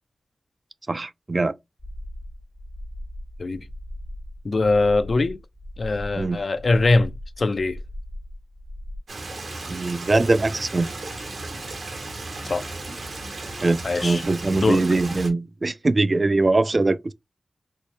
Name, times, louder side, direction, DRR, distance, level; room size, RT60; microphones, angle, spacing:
voice 1, 0.9-1.6 6.2-6.4 9.7-10.9 13.6-17.1, right 2 dB, 40° right, 0.3 m, -22 dB
sound 1, 1.8-9.0, left 1 dB, 15° left, 0.6 m, -38 dB
voice 2, 4.4-5.4 5.8-7.8 12.5-12.6 13.8-14.2 14.6-14.8, left 3 dB, 60° left, 0.4 m, -22 dB
Stream, 9.1-15.3, right 2 dB, 80° right, 1.1 m, -35 dB
4.3 x 2.0 x 3.2 m
wide cardioid pair, 70°, 0 cm